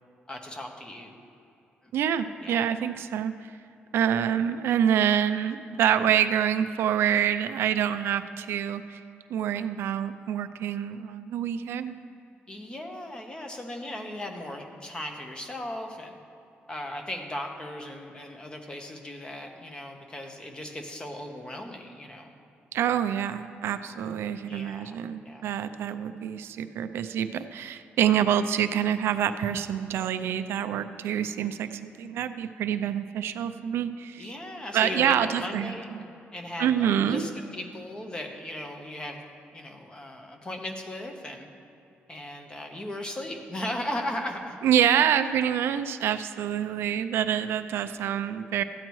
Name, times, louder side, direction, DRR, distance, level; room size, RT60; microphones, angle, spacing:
voice 1, 0.3-1.2 1.8-1.9 2.4-2.6 12.5-16.2 16.7-22.3 24.5-25.5 34.2-39.2 39.5-41.5 42.1-44.6, left 1 dB, 20° left, 3 dB, 1.0 m, -37 dB
voice 2, 1.9-3.5 3.9-9.0 9.3-12.0 22.7-34.3 34.7-35.7 36.6-37.3 44.6-48.6, right 9 dB, 85° right, 10 dB, 0.4 m, -26 dB
14.0 x 8.7 x 3.1 m, 2.7 s
cardioid pair, 130°, 4 cm